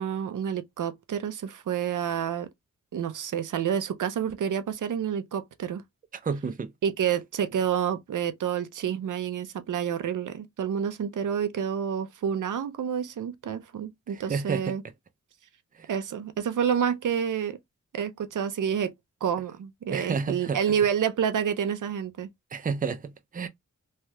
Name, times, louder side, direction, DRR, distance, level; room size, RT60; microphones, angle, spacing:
voice 1, 0.0-2.5 2.9-5.8 6.8-14.8 15.9-17.6 17.9-18.9 19.2-22.3, right 8 dB, 85° right, 0.5 m, -29 dB
voice 2, 6.2-6.7 14.1-14.7 15.8-15.9 19.9-20.6 22.5-23.5, right 5 dB, 30° right, 0.4 m, -30 dB
3.2 x 2.7 x 2.2 m
wide cardioid pair, 110°, 30 cm